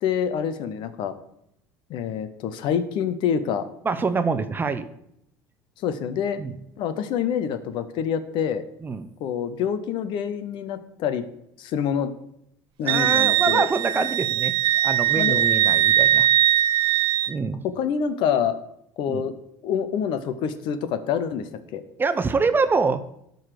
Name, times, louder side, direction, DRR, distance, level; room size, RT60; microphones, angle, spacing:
voice 1, 0.0-1.1 1.9-3.7 5.8-6.4 6.8-8.6 9.2-11.3 11.6-12.1 12.8-13.6 15.1-15.4 17.6-18.6 19.0-19.3 19.6-21.8, left 8 dB, 60° left, 11 dB, 0.9 m, -26 dB
voice 2, 3.8-4.9 6.4-6.5 8.8-9.1 12.8-14.5 14.8-16.3 17.3-17.6 19.1-19.2 22.0-23.0, right 4 dB, 20° right, 11 dB, 0.7 m, -25 dB
Wind instrument woodwind instrument, 12.9-17.3, right 12 dB, 60° right, 0.3 m, -20 dB
12.0 x 4.0 x 6.7 m, 0.75 s
supercardioid pair, 100°, 9 cm